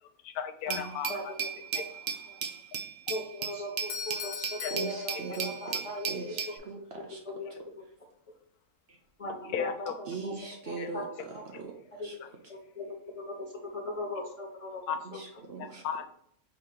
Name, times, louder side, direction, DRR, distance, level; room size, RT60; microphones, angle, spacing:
voice 1, 0.0-1.1 4.6-4.7 9.5-9.9 10.8-10.9 14.9-15.0 15.8-16.0, left 8 dB, 90° left, 7 dB, 1.1 m, -34 dB
voice 2, 0.7-1.9 2.3-2.4 3.1-6.8 7.2-7.5 7.8-7.9 9.2-10.3 10.7-11.0 11.3-11.4 12.0-12.1 12.5-14.8 15.1-15.2, left 1 dB, 30° left, 0 dB, 0.8 m, -39 dB
Glass, 0.7-6.6, right 7 dB, 80° right, 0.4 m, -36 dB
Doorbell, 3.9-5.9, left 5 dB, 60° left, 0.8 m, -41 dB
voice 3, 4.7-7.2 8.9-9.0 10.0-11.7 12.0-12.1 15.0-15.8, right 4 dB, 55° right, 1 dB, 0.8 m, -40 dB
3.8 x 2.9 x 4.8 m, 0.66 s
omnidirectional pair, 1.5 m